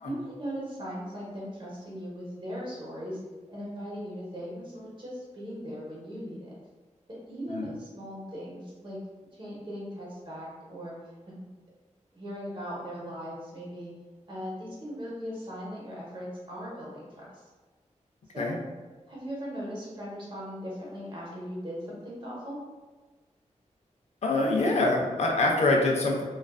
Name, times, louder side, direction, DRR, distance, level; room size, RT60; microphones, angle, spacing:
voice 1, 0.0-3.2 3.5-6.5 7.1-9.0 9.3-10.9 11.3-11.4 12.1-13.9 14.3-17.4 18.3-18.6 19.1-22.6, equal, 40° right, -6 dB, 0.9 m, -38 dB
voice 2, 24.2-26.2, left 2 dB, 60° left, 0 dB, 0.5 m, -25 dB
2.4 x 2.3 x 2.3 m, 1.3 s
wide cardioid pair, 95°, 13 cm